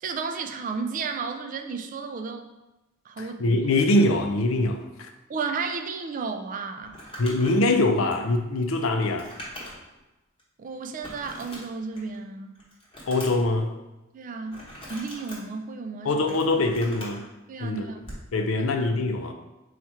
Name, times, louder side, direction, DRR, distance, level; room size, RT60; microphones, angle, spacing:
voice 1, 0.0-2.5 3.1-3.6 5.3-7.0 10.6-12.6 14.1-14.6 14.9-16.3 17.5-18.0 18.6-18.8, right 4 dB, 40° right, 6 dB, 0.3 m, -33 dB
voice 2, 3.2-5.1 7.2-9.3 13.1-13.7 16.0-17.2 17.6-17.9 18.3-19.3, left 2 dB, 85° left, 5 dB, 0.5 m, -23 dB
Crumpling crinkling, 6.8-10.0 10.4-10.5 11.0-12.2 12.5-13.5 14.5-15.4 16.0-17.2 18.0-18.3, equal, 25° left, 1.1 m, -42 dB
4.2 x 2.4 x 4.4 m, 1.0 s
head